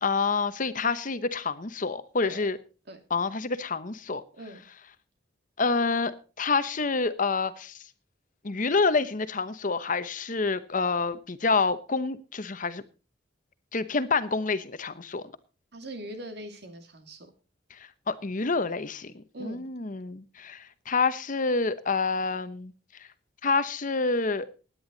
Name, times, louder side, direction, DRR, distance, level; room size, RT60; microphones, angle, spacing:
voice 1, 0.0-2.6 3.1-4.2 5.6-6.1 6.4-7.8 8.4-12.8 13.7-15.2 17.7-22.7 23.4-24.5, left 4 dB, 45° left, 0.9 m, -28 dB
voice 2, 15.7-17.3 19.3-19.7, right 1 dB, 60° right, 2.6 m, -41 dB
17.0 x 10.0 x 4.0 m
head